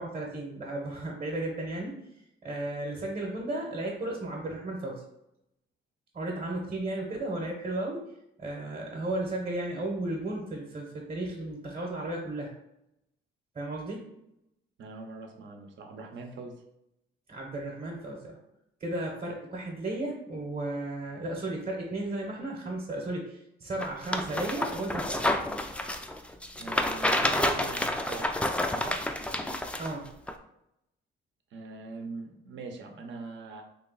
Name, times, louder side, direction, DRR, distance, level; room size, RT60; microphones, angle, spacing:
voice 1, 0.0-1.9 2.4-5.0 6.1-8.0 8.4-12.5 13.5-14.1 17.3-18.4 18.8-25.2 29.8-30.1, right 2 dB, 35° right, -1 dB, 1.0 m, -34 dB
voice 2, 14.8-16.6 26.5-29.1 31.5-33.6, right 4 dB, 70° right, 3 dB, 0.8 m, -41 dB
sound 1, 23.8-29.9 30.3-30.4, left 1 dB, 5° left, 0.3 m, -29 dB
3.2 x 2.8 x 4.0 m, 0.82 s
cardioid pair, 90°, 20 cm